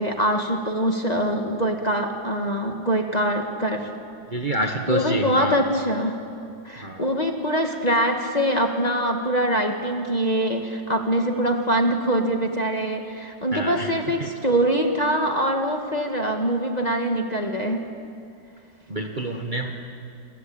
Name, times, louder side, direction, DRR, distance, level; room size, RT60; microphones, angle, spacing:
voice 1, 0.0-3.9 4.9-6.2 6.6-17.8, equal, 20° left, 2 dB, 1.8 m, -23 dB
voice 2, 4.3-5.6 6.8-7.1 13.5-13.9 14.2-14.3 18.9-19.8, right 1 dB, 25° right, 2 dB, 1.5 m, -27 dB
28.0 x 22.0 x 8.9 m, 2.5 s
omnidirectional pair, 2.1 m